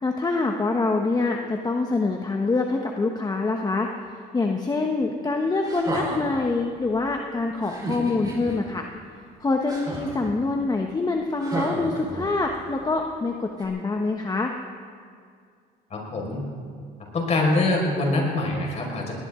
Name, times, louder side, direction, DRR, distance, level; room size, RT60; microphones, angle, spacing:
voice 1, 0.0-3.9 4.3-8.9 9.4-14.5, left 3 dB, 25° left, 2 dB, 1.2 m, -25 dB
sound 1, 5.6-6.4 7.6-8.6 9.7-10.3 11.4-12.6 13.6-13.7, right 2 dB, 25° right, 4.8 m, -32 dB
voice 2, 15.9-16.4 17.1-19.1, left 2 dB, 40° left, -1 dB, 5.3 m, -24 dB
20.0 x 19.0 x 3.8 m, 2.2 s
cardioid pair, 110°, 17 cm